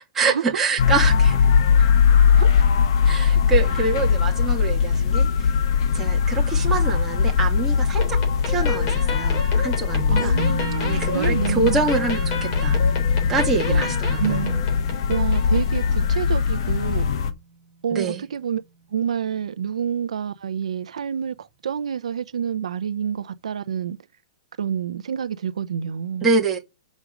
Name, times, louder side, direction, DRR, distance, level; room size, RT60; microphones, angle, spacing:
voice 1, 0.1-1.5 1.8-1.9 3.0-5.5 5.9-8.2 8.5-10.4 10.8-12.8 13.3-14.4 17.9-18.2 26.2-26.6, right 4 dB, 10° right, 2.2 m, -25 dB
sound 1, 0.8-17.3, left 6 dB, 50° left, 1.2 m, -20 dB
sound 2, 8.0-16.1, left 4 dB, 35° left, 3.5 m, -32 dB
voice 2, 10.1-11.8 13.6-14.6 15.1-17.1 17.8-18.6 18.9-24.0 24.6-26.3, right 8 dB, 90° right, 0.7 m, -28 dB
sound 3, 10.3-18.8, right 4 dB, 25° right, 3.0 m, -36 dB
6.2 x 5.2 x 6.2 m
hypercardioid pair, 155°, 3 cm